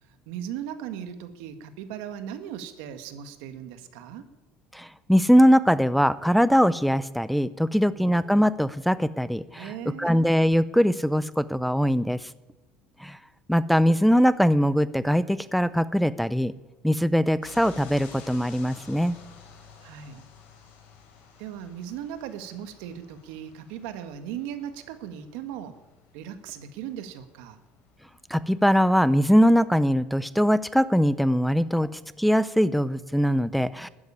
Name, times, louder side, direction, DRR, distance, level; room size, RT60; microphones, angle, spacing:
voice 1, 0.3-4.2 7.9-8.1 9.6-10.1 19.8-20.2 21.4-25.8 26.1-27.6, right 9 dB, 80° right, 9 dB, 1.7 m, -38 dB
voice 2, 4.7-12.3 13.0-13.2 13.5-16.5 16.8-19.1 28.3-33.9, equal, ahead, 16 dB, 0.5 m, -21 dB
sound 1, 17.4-29.5, left 6 dB, 65° left, 4.9 m, -51 dB
13.0 x 9.5 x 9.9 m, 1.1 s
cardioid pair, 130°, 4 cm